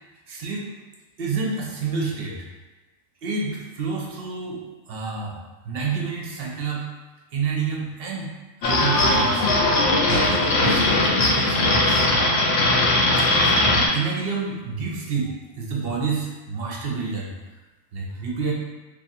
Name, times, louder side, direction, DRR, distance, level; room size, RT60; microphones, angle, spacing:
voice 1, 0.3-0.7 1.2-2.5 3.2-4.6 4.9-5.4 5.6-6.9 7.3-8.3 8.6-9.5 10.1-12.0 13.2-17.3 17.9-18.5, right 4 dB, 55° right, -2 dB, 0.8 m, -29 dB
sound 1, 8.6-13.9, left 2 dB, 60° left, 0.8 m, -19 dB
3.1 x 2.5 x 4.1 m, 1.2 s
omnidirectional pair, 1.4 m